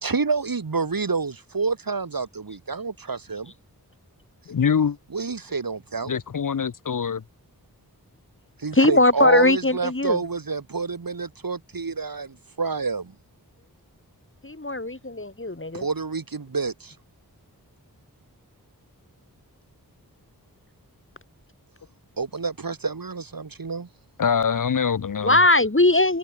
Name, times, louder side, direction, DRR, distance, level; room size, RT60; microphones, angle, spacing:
voice 1, 0.0-3.5 5.1-6.1 8.6-13.1 15.7-16.9 22.2-23.9, right 4 dB, 65° right, 2.0 m, -28 dB
voice 2, 4.5-5.0 6.1-7.2 24.2-25.4, left 6 dB, 60° left, 0.7 m, -24 dB
voice 3, 8.7-10.2 14.4-15.8 25.2-26.2, left 2 dB, 35° left, 4.5 m, -20 dB
wide cardioid pair, 40°, 37 cm